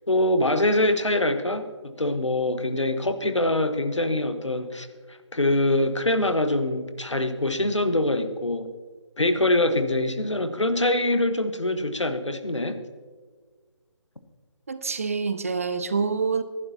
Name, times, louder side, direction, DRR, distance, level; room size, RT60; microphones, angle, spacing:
voice 1, 0.1-8.7 9.2-12.8, left 1 dB, 75° left, 9 dB, 1.3 m, -24 dB
voice 2, 14.7-16.4, right 5 dB, 30° right, 11 dB, 0.5 m, -26 dB
19.5 x 11.5 x 2.9 m, 1.5 s
figure-of-eight pair, 150°, 15 cm